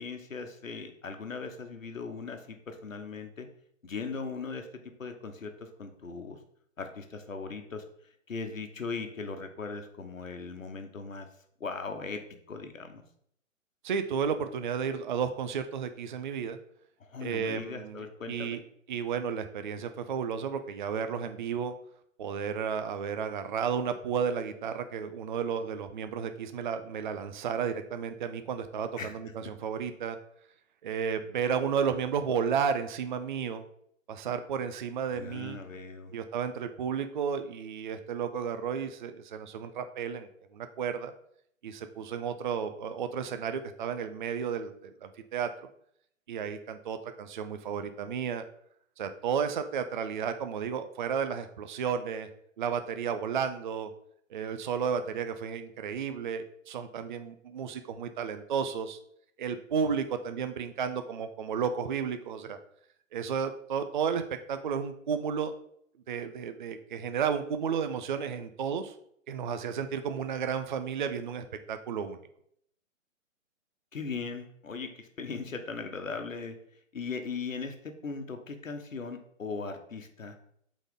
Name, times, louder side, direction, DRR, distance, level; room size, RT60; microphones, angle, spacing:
voice 1, 0.0-3.5 3.8-4.7 5.0-6.4 6.8-7.8 8.3-11.3 11.6-13.0 17.0-18.6 29.0-29.1 35.1-36.1 73.9-76.6 76.9-80.4, left 4 dB, 80° left, 6 dB, 1.2 m, -39 dB
voice 2, 13.8-16.6 17.2-18.6 18.9-21.7 22.2-30.2 30.8-33.6 34.1-35.6 36.1-41.1 41.6-45.5 46.3-48.4 49.0-52.3 52.6-53.9 54.3-59.0 59.4-62.6 63.1-65.5 66.1-68.9 69.3-72.2, right 7 dB, 40° right, 9 dB, 0.4 m, -32 dB
7.8 x 4.1 x 3.7 m, 0.69 s
figure-of-eight pair, 130°, 39 cm